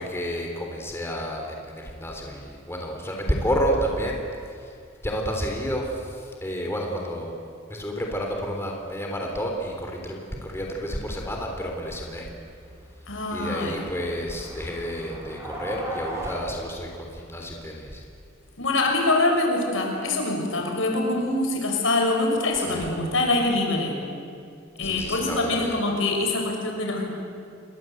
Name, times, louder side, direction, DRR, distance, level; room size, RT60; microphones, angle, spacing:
voice 1, 0.0-4.2 4.5-4.7 5.0-7.4 7.7-12.3 13.3-18.1 22.7-22.8 24.8-25.8, equal, 15° left, 1 dB, 3.6 m, -30 dB
sound 1, 10.9-16.4, equal, 15° right, 5.0 m, -40 dB
voice 2, 13.1-13.8 18.6-24.0 24.8-27.1, left 2 dB, 75° left, 2 dB, 6.0 m, -24 dB
28.0 x 23.5 x 8.0 m, 2.5 s
head